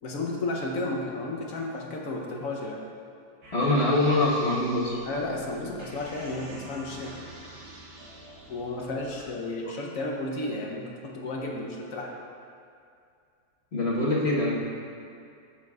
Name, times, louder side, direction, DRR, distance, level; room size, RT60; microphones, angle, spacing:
voice 1, 0.0-2.8 5.0-7.1 8.5-12.1, left 2 dB, 55° left, -1 dB, 1.0 m, -33 dB
sound 1, 3.4-9.3, right 2 dB, 65° right, 1.8 m, -46 dB
voice 2, 3.5-5.0 9.5-9.6 13.7-14.5, left 2 dB, 40° left, -6 dB, 1.4 m, -24 dB
13.0 x 6.5 x 2.4 m, 2.4 s
omnidirectional pair, 2.0 m